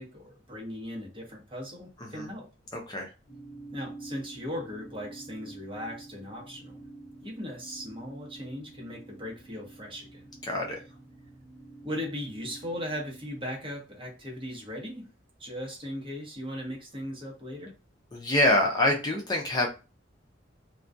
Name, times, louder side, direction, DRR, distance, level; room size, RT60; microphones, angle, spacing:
voice 1, 0.0-2.5 3.7-6.8 7.2-10.3 11.8-15.0 15.4-17.7, equal, 30° right, -2 dB, 0.9 m, -38 dB
voice 2, 2.7-3.1 10.4-10.8 18.1-19.7, left 1 dB, 20° left, 0 dB, 0.4 m, -25 dB
sound 1, 3.3-13.3, right 2 dB, 45° left, 1.1 m, -48 dB
2.3 x 2.2 x 2.5 m, 0.31 s
head